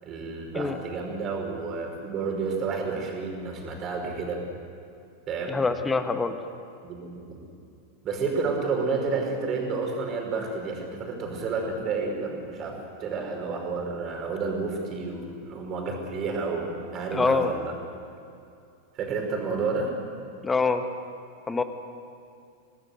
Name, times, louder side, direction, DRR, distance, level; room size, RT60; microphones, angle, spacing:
voice 1, 0.0-4.4 5.3-5.6 6.8-7.5 8.0-17.7 18.9-19.9, right 4 dB, 30° right, 2 dB, 5.4 m, -30 dB
voice 2, 5.5-6.3 17.1-17.5 20.4-20.8 21.5-21.6, left 4 dB, 15° left, 9 dB, 1.5 m, -25 dB
26.0 x 18.5 x 8.1 m, 2.5 s
figure-of-eight pair, 90°, 0 cm